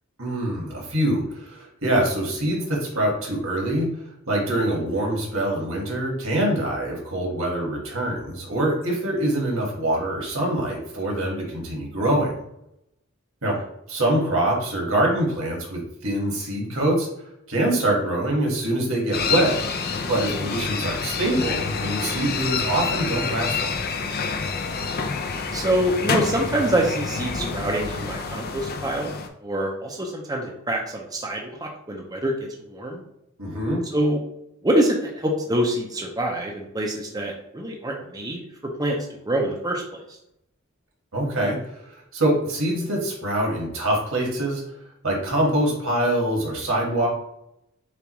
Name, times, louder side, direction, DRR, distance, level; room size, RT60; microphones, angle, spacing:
voice 1, 0.2-3.9 4.3-12.3 13.4-13.6 13.9-17.1 17.5-19.6 20.1-23.8 33.4-33.8 41.1-44.6 45.0-47.1, right 1 dB, 75° right, -1 dB, 1.6 m, -24 dB
sound 1, 19.1-29.3, left 5 dB, 50° left, 0.5 m, -28 dB
voice 2, 25.5-29.1 29.4-33.0 33.9-34.2 34.6-38.4 38.8-39.0 39.3-40.0, right 1 dB, 20° right, 0 dB, 0.6 m, -25 dB
6.8 x 2.4 x 3.0 m, 0.80 s
head